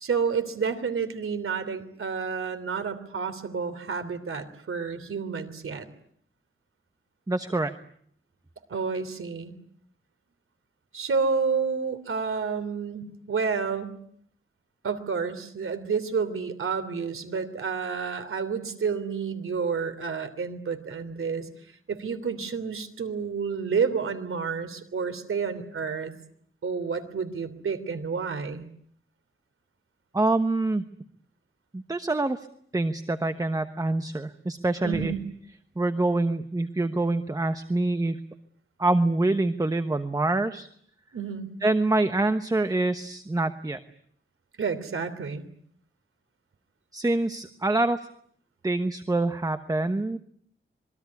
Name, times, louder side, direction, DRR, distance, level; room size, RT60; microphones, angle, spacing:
voice 1, 0.0-5.9 8.7-9.5 10.9-14.0 14.8-21.5 21.9-26.1 26.6-28.7 34.8-35.2 41.1-41.5 44.6-45.5, right 5 dB, 80° right, 10 dB, 3.2 m, -30 dB
voice 2, 7.3-7.7 30.1-30.9 31.7-32.5 32.7-35.1 35.8-38.2 38.8-40.7 41.6-43.8 46.9-48.1 48.6-50.2, right 2 dB, 15° right, 9 dB, 1.1 m, -25 dB
26.5 x 22.0 x 9.6 m, 0.64 s
wide cardioid pair, 165°, 21 cm